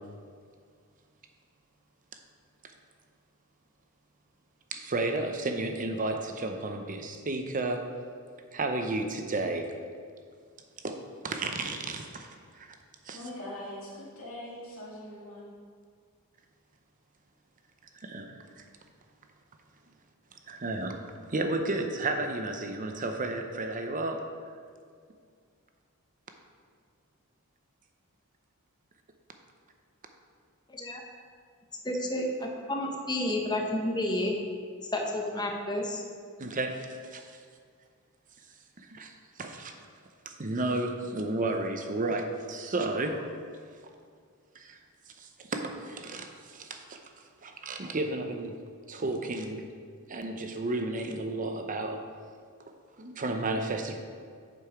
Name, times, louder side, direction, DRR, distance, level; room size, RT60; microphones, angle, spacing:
voice 1, 4.7-7.8 8.5-9.8 10.8-11.0 11.2-12.3 12.5-12.7 13.0-13.2 17.9-18.6 20.5-21.0 21.3-24.2 36.4-37.4 38.8-39.7 40.3-43.3 44.5-44.8 45.2-47.0 47.4-48.5 48.9-49.7 50.1-52.0 52.6-54.0, right 2 dB, 40° right, 5 dB, 0.7 m, -32 dB
voice 2, 13.1-15.5, left 1 dB, 70° left, -6 dB, 2.2 m, -42 dB
voice 3, 30.7-31.0 31.8-34.4 34.9-36.0, left 1 dB, 20° left, 1 dB, 0.9 m, -30 dB
7.5 x 5.3 x 4.9 m, 2.1 s
head